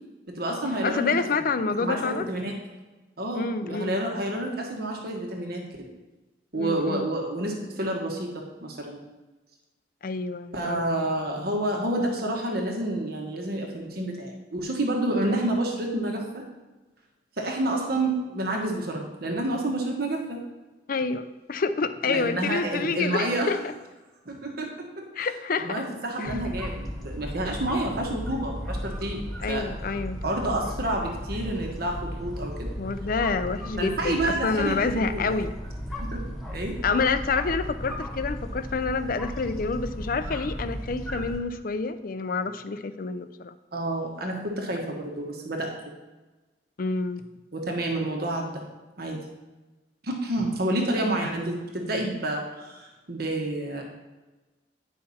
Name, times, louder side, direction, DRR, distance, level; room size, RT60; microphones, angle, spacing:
voice 1, 0.3-1.2 1.8-2.6 3.2-5.9 6.5-9.0 10.5-16.4 17.4-20.4 22.1-23.6 24.2-25.3 25.6-29.8 30.2-32.7 33.8-35.4 36.1-36.2 36.5-36.8 43.7-45.7 47.5-48.6 49.0-49.2 50.0-53.8, right 1 dB, 60° right, 1 dB, 1.4 m, -29 dB
voice 2, 0.8-2.3 3.3-4.0 6.5-7.1 10.0-10.9 20.9-23.6 25.2-25.8 26.2-26.4 29.4-30.2 32.8-35.5 36.8-43.6 46.8-47.2, left 4 dB, 50° left, 11 dB, 0.5 m, -28 dB
sound 1, 26.2-41.4, equal, ahead, 1.4 m, -35 dB
10.0 x 5.7 x 4.2 m, 1.2 s
head